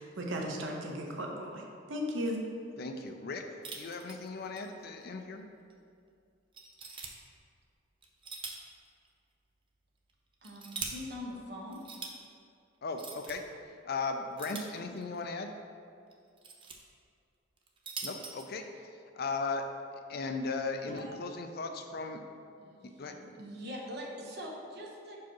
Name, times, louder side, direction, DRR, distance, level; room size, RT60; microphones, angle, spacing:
voice 1, 0.0-1.6 1.9-2.4, equal, 70° right, 1 dB, 0.9 m, -35 dB
voice 2, 2.8-5.4 12.8-13.4 13.9-15.5 18.0-18.6 19.1-19.6 20.1-22.2 23.0-23.1, left 3 dB, 50° left, 6 dB, 0.5 m, -37 dB
sound 1, 3.6-4.7 5.0-5.1 5.7-5.8 6.5-7.1 8.0-8.7 9.0-9.1 10.1-10.9 11.7-12.1 12.9-13.3 14.4-15.2 16.1-16.8 17.6-18.5, right 4 dB, 25° right, 0.5 m, -42 dB
voice 3, 10.4-11.8 20.9-21.2 22.6-25.2, left 1 dB, 55° right, -1 dB, 1.0 m, -43 dB
5.8 x 4.7 x 4.6 m, 2.4 s
head